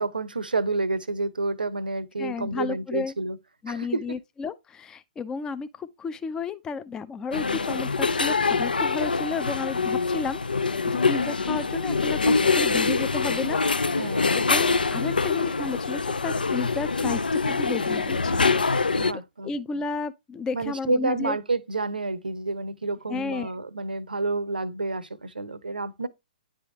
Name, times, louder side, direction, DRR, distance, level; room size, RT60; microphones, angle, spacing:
voice 1, 0.0-3.4 3.7-4.0 14.0-14.4 18.9-19.5 20.5-26.1, right 3 dB, 80° right, 0.7 m, -29 dB
voice 2, 2.2-3.1 3.6-10.4 10.9-18.5 19.4-21.4 23.1-23.5, left 5 dB, 15° left, 0.4 m, -33 dB
sound 1, 7.3-19.1, left 4 dB, 80° left, 0.4 m, -24 dB
10.0 x 3.4 x 2.9 m
figure-of-eight pair, 120°, 5 cm